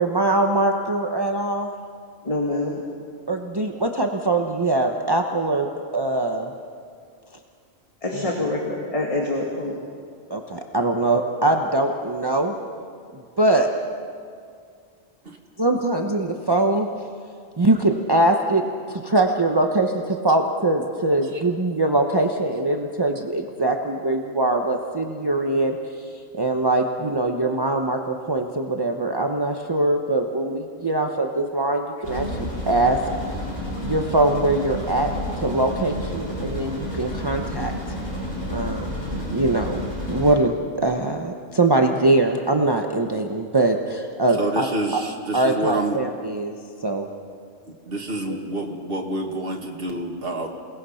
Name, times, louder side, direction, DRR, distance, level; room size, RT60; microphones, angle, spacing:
voice 1, 0.0-1.7 3.3-6.5 8.1-8.5 10.3-12.5 13.1-13.7 15.6-16.9 17.6-18.6 18.9-33.0 33.3-33.4 33.8-35.1 35.4-37.7 38.5-39.8 40.1-45.0 45.3-46.5 46.8-47.1, right 2 dB, 25° right, 2 dB, 1.0 m, -22 dB
voice 2, 2.2-2.8 8.0-9.8, left 2 dB, 30° left, -1 dB, 2.2 m, -26 dB
sound 1, 32.0-40.3, left 1 dB, 50° left, 6.7 m, -30 dB
voice 3, 44.3-46.0 47.9-50.5, right 1 dB, 60° right, 0 dB, 2.2 m, -28 dB
28.5 x 18.5 x 5.7 m, 2.2 s
omnidirectional pair, 1.1 m